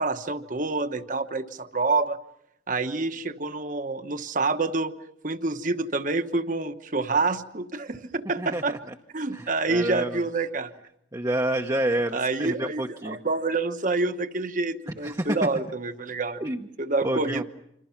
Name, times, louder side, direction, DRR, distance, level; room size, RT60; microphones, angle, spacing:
voice 1, 0.0-2.2 2.7-4.9 5.2-8.8 9.1-10.7 12.1-16.4 16.8-17.4, right 3 dB, 45° right, 9 dB, 1.2 m, -27 dB
voice 2, 8.4-8.8 9.3-10.2 11.1-13.2 15.0-15.3 16.4-16.7 17.0-17.4, right 1 dB, 20° right, 3 dB, 0.9 m, -29 dB
27.5 x 27.0 x 5.9 m, 0.77 s
head